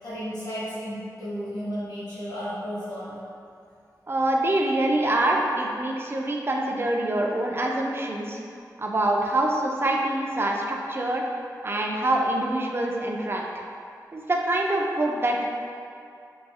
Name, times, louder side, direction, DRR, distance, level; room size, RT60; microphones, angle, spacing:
voice 1, 0.0-3.1, equal, 70° left, -10 dB, 1.4 m, -33 dB
voice 2, 4.1-8.4 8.8-11.2 11.6-13.4 14.1-15.4, right 1 dB, 35° right, 0 dB, 0.4 m, -25 dB
4.6 x 2.3 x 2.7 m, 2.4 s
wide cardioid pair, 100°, 7 cm